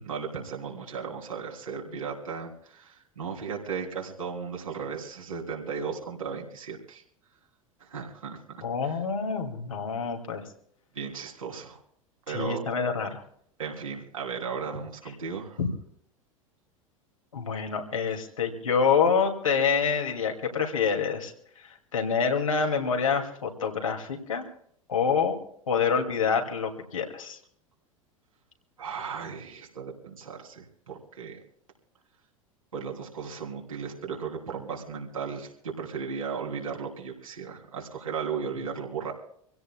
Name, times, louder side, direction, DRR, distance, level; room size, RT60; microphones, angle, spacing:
voice 1, 0.0-7.0 7.8-9.0 10.9-11.8 12.3-12.6 13.6-15.6 28.8-31.4 32.7-39.1, right 6 dB, 75° right, -1 dB, 3.3 m, -36 dB
voice 2, 8.6-10.4 12.3-13.2 15.6-15.7 17.3-21.3 21.6-24.4 24.9-25.4 25.7-27.4, left 6 dB, 75° left, 2 dB, 2.5 m, -27 dB
26.0 x 16.5 x 2.3 m, 0.66 s
figure-of-eight pair, 85°, 17 cm